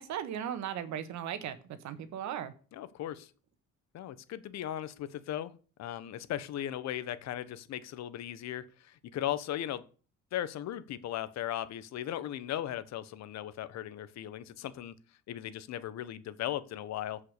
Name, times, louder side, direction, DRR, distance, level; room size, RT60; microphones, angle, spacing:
voice 1, 0.0-1.6 1.8-2.5, right 9 dB, 70° right, 12 dB, 1.6 m, -37 dB
voice 2, 2.7-3.3 3.9-5.5 5.8-9.8 10.3-14.9 15.3-17.2, left 12 dB, 65° left, 14 dB, 1.1 m, -37 dB
14.5 x 5.6 x 6.7 m, 0.38 s
cardioid pair, 160°, 29 cm